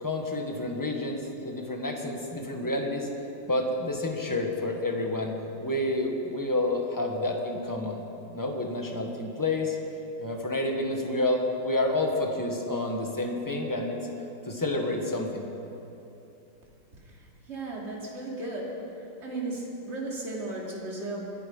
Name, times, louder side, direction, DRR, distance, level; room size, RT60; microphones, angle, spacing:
voice 1, 0.0-3.1 3.4-5.3 5.6-8.0 8.3-9.8 10.2-14.1 14.4-15.5, left 2 dB, 10° left, 2 dB, 1.3 m, -29 dB
voice 2, 17.0-18.9 19.2-21.2, right 2 dB, 30° right, -4 dB, 3.1 m, -35 dB
24.5 x 10.0 x 5.5 m, 2.9 s
omnidirectional pair, 2.3 m